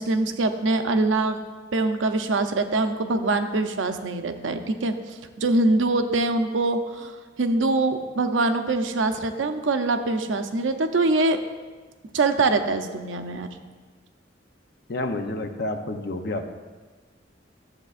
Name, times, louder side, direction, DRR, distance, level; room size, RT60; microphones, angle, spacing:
voice 1, 0.0-1.4 1.7-4.9 5.4-11.4 12.1-13.5, right 2 dB, 85° right, 7 dB, 0.6 m, -23 dB
voice 2, 14.9-16.5, left 2 dB, 60° left, 7 dB, 0.6 m, -29 dB
11.5 x 7.5 x 2.5 m, 1.3 s
head